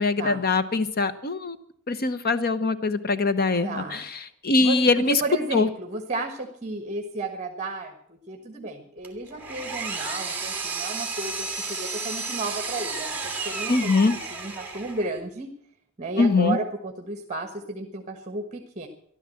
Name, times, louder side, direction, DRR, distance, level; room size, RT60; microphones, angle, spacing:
voice 1, 0.0-1.6 1.9-5.2 5.5-5.7 13.7-14.2 16.2-16.6, left 3 dB, 45° left, 13 dB, 0.9 m, -22 dB
voice 2, 3.6-4.0 4.6-7.9 8.3-13.9 14.3-15.5 16.0-18.9, right 2 dB, 30° right, 5 dB, 1.4 m, -33 dB
Power tool, 9.0-15.1, right 4 dB, 10° right, 2.0 m, -32 dB
14.0 x 12.0 x 7.7 m, 0.67 s
head